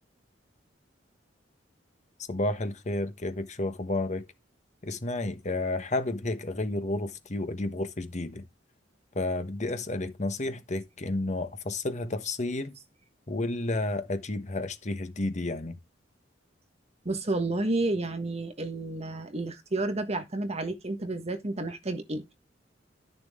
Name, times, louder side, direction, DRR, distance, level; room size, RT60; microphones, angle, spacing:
voice 1, 2.3-4.2 4.8-8.4 9.1-12.7 13.3-15.8, left 2 dB, 40° left, 1.2 m, -31 dB
voice 2, 17.0-22.3, right 2 dB, 35° right, 1.4 m, -31 dB
11.5 x 6.9 x 3.6 m
head